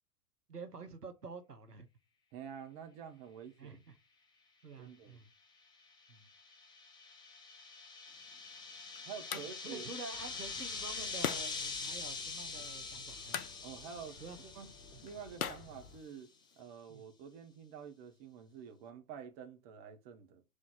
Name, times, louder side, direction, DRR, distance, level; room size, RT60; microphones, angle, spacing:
voice 1, 0.5-1.9 3.6-3.9 4.6-5.3 6.1-6.3 9.3-13.4 14.2-14.5 16.9-17.0, right 4 dB, 85° right, 1.0 m, -48 dB
voice 2, 2.3-3.8 4.8-5.2 9.0-9.9 13.6-14.2 14.5-14.7 15.0-16.3 16.6-20.4, right 7 dB, 35° right, 1.2 m, -48 dB
sound 1, 5.9-15.7, left 4 dB, 10° left, 0.7 m, -44 dB
sound 2, 8.1-16.6, left 8 dB, 65° left, 0.8 m, -45 dB
sound 3, 10.1-16.0, left 2 dB, 80° left, 1.2 m, -57 dB
4.9 x 3.9 x 5.8 m
figure-of-eight pair, 95°, 46 cm